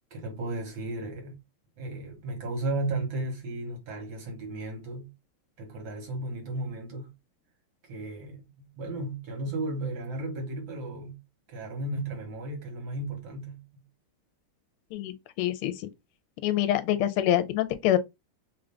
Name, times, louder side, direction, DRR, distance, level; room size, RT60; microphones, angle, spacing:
voice 1, 0.1-1.4 1.8-5.1 5.6-7.1 7.8-11.2 11.5-13.8, right 2 dB, 65° right, 1.7 m, -34 dB
voice 2, 14.9-15.9 16.4-18.0, left 12 dB, 80° left, 1.5 m, -26 dB
3.7 x 2.5 x 3.3 m
omnidirectional pair, 2.4 m